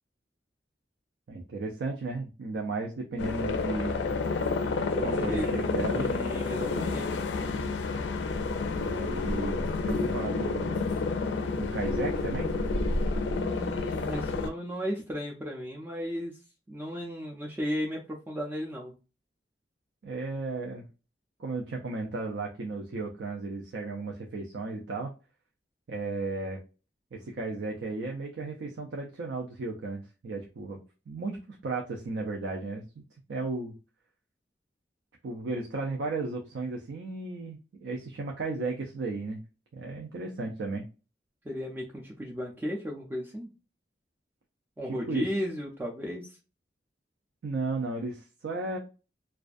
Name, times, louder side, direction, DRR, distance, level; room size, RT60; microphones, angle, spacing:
voice 1, 1.3-4.0 5.0-6.1 8.8-10.9 11.6-12.5 20.0-20.9 21.4-25.1 25.9-26.6 27.1-30.8 31.1-33.0 33.3-33.7 35.2-39.4 39.7-40.9 44.9-45.3 47.4-48.8, right 3 dB, 80° right, 1 dB, 0.4 m, -34 dB
sound 1, 3.2-14.5, left 3 dB, 85° left, 0.4 m, -30 dB
voice 2, 4.9-5.6 6.0-7.2 13.2-16.4 16.7-18.9 41.4-43.5 44.8-46.4, equal, 10° right, -3 dB, 0.3 m, -35 dB
2.4 x 2.3 x 2.4 m, 0.32 s
head